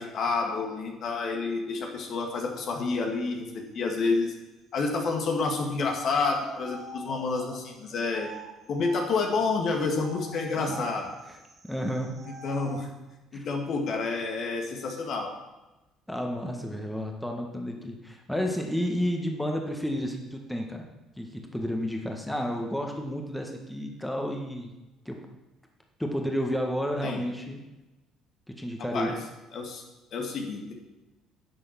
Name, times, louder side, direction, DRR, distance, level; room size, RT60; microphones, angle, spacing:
voice 1, 0.0-3.5 3.7-4.3 4.7-8.3 8.7-11.0 12.3-12.9 13.3-15.3 27.0-27.2 28.9-29.1 29.5-29.8 30.1-30.7, left 4 dB, 45° left, 2 dB, 1.9 m, -29 dB
sound 1, 6.0-9.4 10.0-12.9, right 4 dB, 35° right, 1.3 m, -45 dB
voice 2, 11.6-12.1 13.3-13.5 16.1-20.8 21.2-24.7 25.0-25.2 26.0-27.6 28.5-29.2, equal, 5° left, 2 dB, 1.7 m, -31 dB
11.0 x 7.5 x 6.0 m, 1.0 s
figure-of-eight pair, 50°, 0 cm